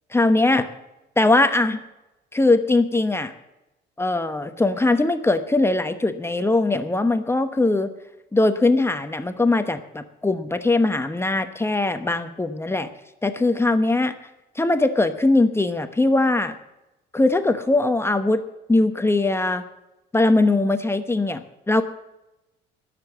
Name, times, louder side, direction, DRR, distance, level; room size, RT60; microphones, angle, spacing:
voice 1, 0.1-0.7 1.2-1.8 2.3-3.3 4.0-7.9 8.3-12.9 13.2-14.1 14.6-16.5 17.1-18.4 18.7-19.6 20.1-21.8, left 2 dB, 10° left, 8 dB, 1.0 m, -20 dB
18.5 x 7.0 x 7.3 m, 0.95 s
cardioid pair, 105°, 20 cm